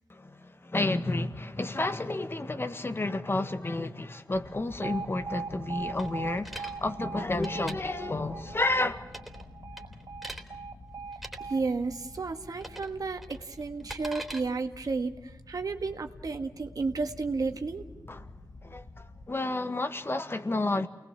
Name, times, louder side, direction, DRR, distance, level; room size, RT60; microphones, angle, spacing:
voice 1, 0.1-9.0 18.1-18.2 18.6-20.9, left 2 dB, 35° left, 1.8 m, -31 dB
sound 1, 4.3-19.3, left 2 dB, 65° left, 1.7 m, -49 dB
Alarm, 4.8-12.9, right 5 dB, 90° right, 1.1 m, -41 dB
sound 2, 6.0-6.7 7.3-7.8 9.1-9.4 9.8-10.4 11.1-11.4 12.6-12.9 13.2-14.4, right 1 dB, ahead, 3.5 m, -41 dB
voice 2, 11.4-17.9, right 4 dB, 65° right, 1.8 m, -32 dB
29.0 x 20.5 x 7.6 m
cardioid pair, 55°, 7 cm